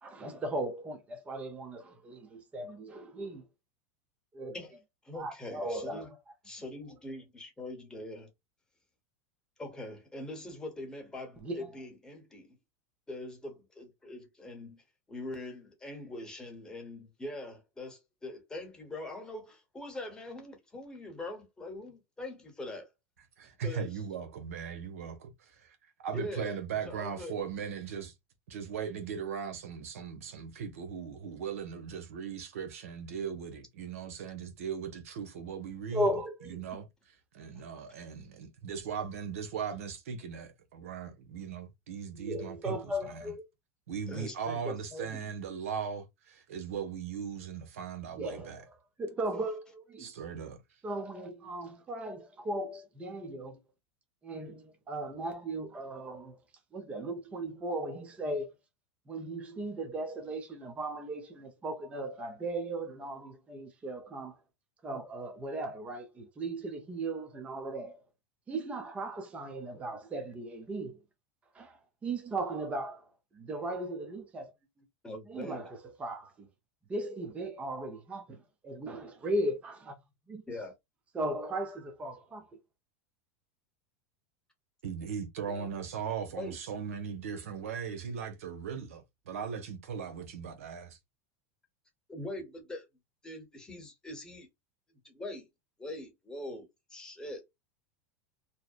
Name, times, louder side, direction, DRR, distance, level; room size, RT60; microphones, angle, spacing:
voice 1, 0.0-3.5 4.3-4.6 5.1-6.1 11.4-11.7 35.9-36.6 42.2-43.4 48.2-50.1 50.8-53.6 54.2-56.4 56.7-58.5 59.1-64.4 64.8-68.0 68.5-71.0 71.5-73.0 73.3-74.5 75.3-76.5 76.9-78.4 78.6-80.0 80.3-80.4 81.1-82.5, right 1 dB, 15° right, 0.5 m, -37 dB
voice 2, 5.0-6.1 6.4-8.3 9.6-12.6 13.1-14.8 15.1-22.9 23.6-24.0 26.1-27.3 36.7-36.8 44.1-45.3 75.0-75.7 80.5-80.7 85.5-85.7 86.4-86.6 92.1-92.9 93.2-94.5 95.0-95.5 95.8-97.5, left 1 dB, 10° left, 1.0 m, -43 dB
voice 3, 23.4-28.1 28.5-36.1 36.4-36.9 37.3-42.7 43.1-43.3 43.9-48.6 50.0-50.6 84.8-91.0, right 7 dB, 90° right, 0.8 m, -38 dB
2.7 x 2.0 x 2.3 m
supercardioid pair, 135°, 7 cm